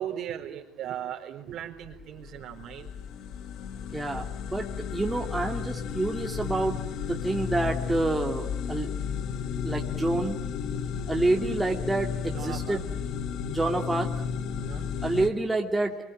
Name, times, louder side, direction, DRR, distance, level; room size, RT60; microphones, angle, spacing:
voice 1, 0.0-2.9 12.3-12.8 14.5-14.9, right 10 dB, 55° right, 3 dB, 4.1 m, -37 dB
sound 1, 1.8-15.3, left 7 dB, 60° left, 1.5 m, -33 dB
voice 2, 3.9-8.9 9.6-10.4 11.1-12.9 13.5-14.2 15.0-16.0, right 2 dB, 10° right, 2 dB, 2.5 m, -28 dB
27.0 x 23.5 x 9.1 m, 0.81 s
hypercardioid pair, 75°, 0 cm